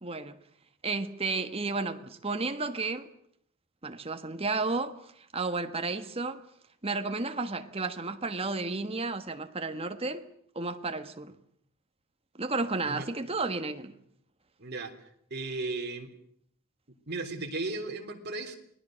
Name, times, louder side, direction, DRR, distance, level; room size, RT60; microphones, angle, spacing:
voice 1, 0.0-0.4 0.8-3.1 3.8-5.0 5.3-6.4 6.8-10.3 10.5-11.3 12.3-14.0, right 3 dB, 25° right, 1.4 m, -32 dB
voice 2, 14.6-14.9 15.3-16.1 17.1-18.5, right 3 dB, 50° right, 3.5 m, -35 dB
29.0 x 20.0 x 6.4 m
head